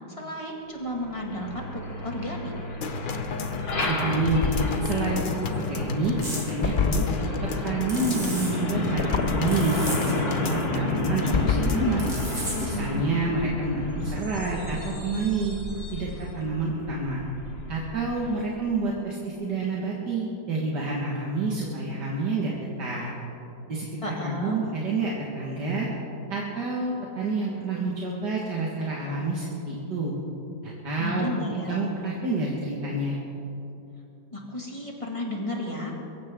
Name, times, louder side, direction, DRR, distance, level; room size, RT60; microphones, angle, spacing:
voice 1, 0.1-2.5 24.0-24.6 31.0-31.8 34.3-35.9, left 1 dB, 20° left, -1 dB, 2.2 m, -33 dB
Truck, 0.8-18.5, left 2 dB, 60° left, 2.7 m, -32 dB
sound 1, 2.8-12.2 12.6-12.7, left 5 dB, 45° left, 0.6 m, -30 dB
voice 2, 3.9-4.5 4.8-5.2 5.5-6.2 6.5-7.0 7.6-12.1 12.6-15.6 15.9-16.1 16.3-17.2 17.7-23.1 23.7-25.9 26.3-30.1 30.6-31.3 31.5-33.2, right 3 dB, 75° right, -4 dB, 2.3 m, -28 dB
sound 2, 6.2-6.4 7.9-8.5 9.5-10.1 12.0-12.7, right 1 dB, 45° right, 3.1 m, -35 dB
23.0 x 15.0 x 3.7 m, 2.9 s
omnidirectional pair, 1.8 m